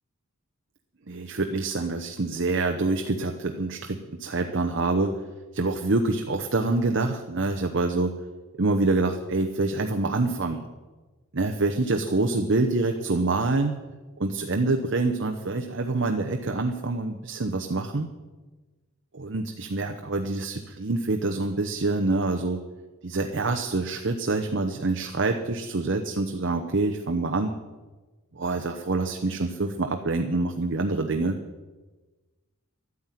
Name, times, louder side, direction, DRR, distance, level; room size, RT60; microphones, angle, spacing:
voice 1, 1.1-5.1 5.5-8.1 8.6-10.6 11.3-13.8 14.2-18.1 19.1-22.6 23.0-27.5 28.3-31.4, right 3 dB, 55° right, 5 dB, 0.9 m, -26 dB
12.5 x 9.7 x 9.1 m, 1.3 s
head